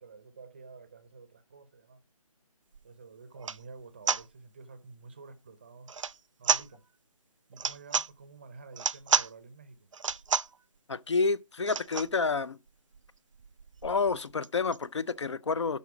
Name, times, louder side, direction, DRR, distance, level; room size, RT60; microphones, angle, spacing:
voice 1, 0.0-2.0 2.8-5.9 6.4-6.8 7.5-9.9, right 4 dB, 20° right, 0.6 m, -50 dB
sound 1, 2.7-2.8 3.4-3.6 4.1-4.2 5.9-6.2 6.4-6.7 7.5-8.1 8.7-9.3 9.9-10.6 11.6-12.1 12.7-12.8 12.9-13.1 13.4-14.8, right 6 dB, 60° right, 0.5 m, -30 dB
voice 2, 10.9-12.6 13.8-15.8, left 4 dB, 55° left, 0.6 m, -29 dB
12.0 x 4.1 x 5.9 m
hypercardioid pair, 170°, 18 cm